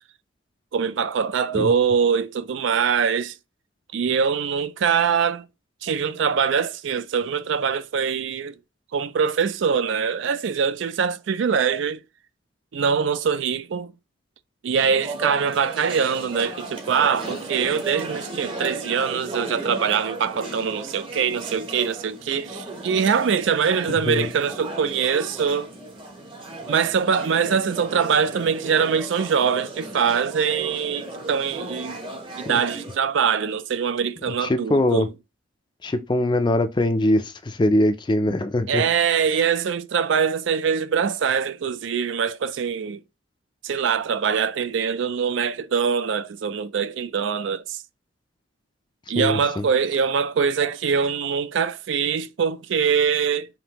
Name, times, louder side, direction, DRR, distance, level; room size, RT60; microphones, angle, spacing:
voice 1, 0.7-3.3 3.9-5.5 5.8-8.6 8.9-12.0 12.7-13.9 14.6-25.7 26.7-32.0 32.4-35.1 38.7-43.0 43.6-47.8 49.1-53.5, right 6 dB, 65° right, 0.4 m, -23 dB
sound 1, 14.8-33.0, right 2 dB, 25° right, 0.8 m, -35 dB
voice 2, 34.4-35.1 35.8-38.8 49.2-49.6, left 1 dB, 25° left, 0.4 m, -22 dB
5.2 x 2.6 x 2.9 m
head